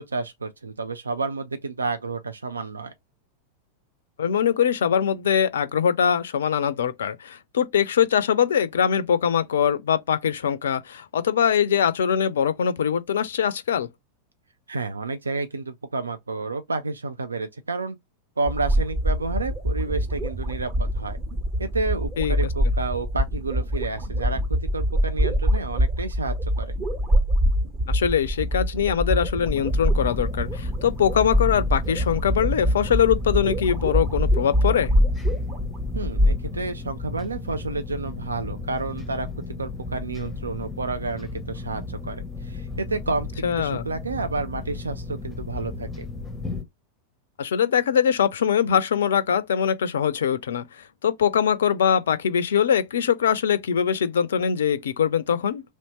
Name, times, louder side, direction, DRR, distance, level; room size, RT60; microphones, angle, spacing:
voice 1, 0.0-2.9 14.7-18.0 18.4-21.2 21.6-26.7 35.9-39.3 39.6-46.1, right 3 dB, 75° right, 0.3 m, -30 dB
voice 2, 4.2-13.9 22.2-22.3 27.9-34.9 43.4-43.9 47.4-55.6, left 8 dB, 65° left, 0.3 m, -22 dB
sound 1, 18.4-36.4, equal, 30° right, 1.2 m, -24 dB
sound 2, 29.4-46.6, left 3 dB, 10° left, 0.7 m, -35 dB
3.0 x 2.7 x 2.9 m
figure-of-eight pair, 90°, 0 cm